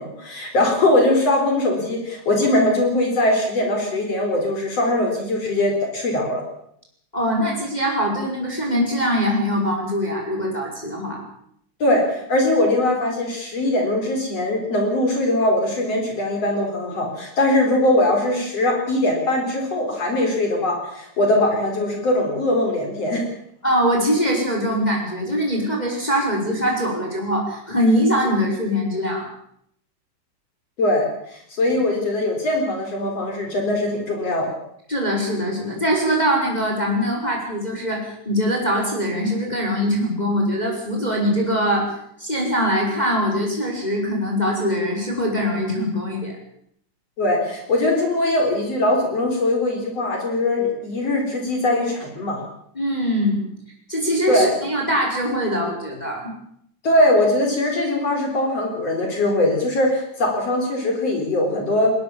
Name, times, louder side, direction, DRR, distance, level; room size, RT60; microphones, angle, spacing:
voice 1, 0.0-6.4 11.8-23.2 30.8-34.5 47.2-52.4 54.3-54.5 56.8-61.9, left 1 dB, 55° left, 2 dB, 5.1 m, -21 dB
voice 2, 7.1-11.2 23.6-29.3 34.9-41.9 42.2-46.3 52.8-53.4 53.9-56.3, equal, 10° left, -1 dB, 5.4 m, -22 dB
21.0 x 20.5 x 7.2 m, 0.70 s
omnidirectional pair, 3.5 m